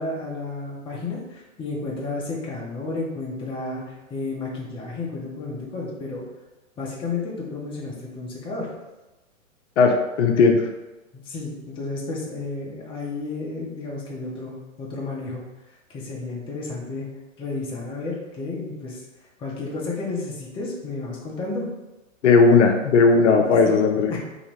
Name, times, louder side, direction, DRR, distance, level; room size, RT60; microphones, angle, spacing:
voice 1, 0.0-6.2 6.8-8.7 11.1-15.4 15.9-17.1 17.4-19.0 19.4-21.7 23.6-23.8 24.1-24.2, left 3 dB, 15° left, -3 dB, 0.7 m, -32 dB
voice 2, 9.8-10.7 22.2-24.1, left 4 dB, 60° left, 3 dB, 0.6 m, -17 dB
3.9 x 2.7 x 3.0 m, 1.0 s
hypercardioid pair, 120°, 40 cm